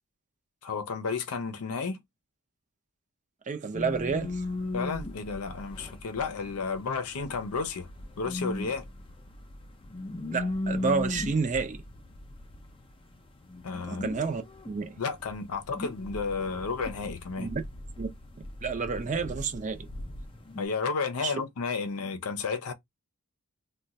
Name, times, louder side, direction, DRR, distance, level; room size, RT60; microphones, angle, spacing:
voice 1, 0.6-2.0 4.7-7.9 8.2-8.8 13.6-14.0 15.0-17.5 20.6-22.7, left 4 dB, 85° left, 0.6 m, -32 dB
voice 2, 3.5-4.4 10.3-11.8 13.9-15.0 17.4-17.6 18.0-18.1 18.6-19.9 21.2-21.3, right 5 dB, 35° right, 0.5 m, -30 dB
sound 1, 3.7-20.7, left 2 dB, 25° left, 0.5 m, -38 dB
2.4 x 2.2 x 4.0 m
head